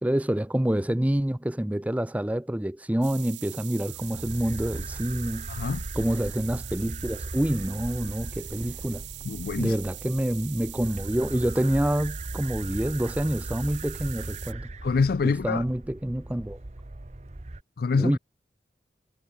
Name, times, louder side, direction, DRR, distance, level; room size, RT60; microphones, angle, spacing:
voice 1, 0.0-5.5 5.9-9.1 9.6-14.7 15.2-16.6 17.9-18.2, right 1 dB, 10° right, 0.5 m, -27 dB
sound 1, 3.0-14.5, right 18 dB, 90° right, 0.6 m, -42 dB
sound 2, 3.9-17.6, right 2 dB, 40° right, 1.0 m, -38 dB
voice 2, 5.5-5.8 9.3-9.8 14.8-15.6 17.8-18.2, left 4 dB, 55° left, 0.4 m, -25 dB
head